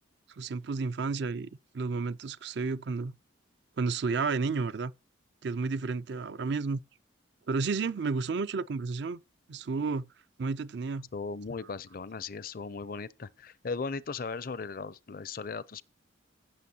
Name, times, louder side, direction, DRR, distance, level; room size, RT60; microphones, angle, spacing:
voice 1, 0.4-1.5 1.7-3.1 3.8-4.9 5.4-6.8 7.5-9.2 9.5-10.1 10.4-11.1, right 4 dB, 60° right, 0.4 m, -31 dB
voice 2, 11.1-15.8, left 4 dB, 45° left, 0.5 m, -37 dB
16.5 x 6.7 x 2.8 m
head